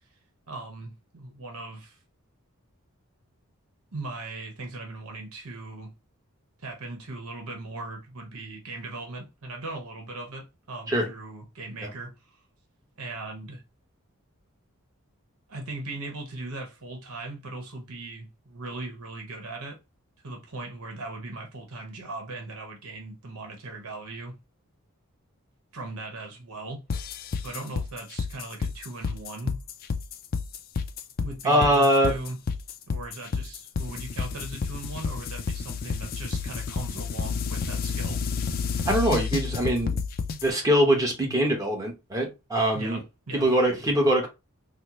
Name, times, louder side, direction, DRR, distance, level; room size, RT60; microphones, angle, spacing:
voice 1, 0.5-2.0 3.9-5.9 6.6-12.1 13.0-13.6 15.5-19.8 20.2-24.4 25.7-26.8 27.4-29.6 31.2-32.4 32.9-38.2 42.7-43.5, right 2 dB, 80° right, 1.0 m, -38 dB
sound 1, 26.9-40.5, left 5 dB, 40° left, 0.3 m, -30 dB
voice 2, 31.4-32.1 38.9-40.0 40.4-43.0 43.3-44.3, equal, 15° right, 0.9 m, -23 dB
4.2 x 2.0 x 2.9 m
head